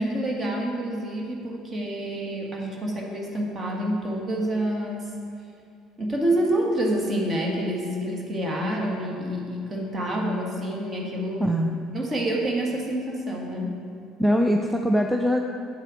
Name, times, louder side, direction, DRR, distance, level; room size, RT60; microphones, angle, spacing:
voice 1, 0.0-5.1 6.0-11.5 11.9-13.7, right 1 dB, 30° right, -1 dB, 1.9 m, -27 dB
voice 2, 11.4-11.8 14.2-15.4, equal, 5° right, 3 dB, 0.5 m, -22 dB
8.4 x 7.5 x 5.0 m, 2.4 s
figure-of-eight pair, 55°, 0 cm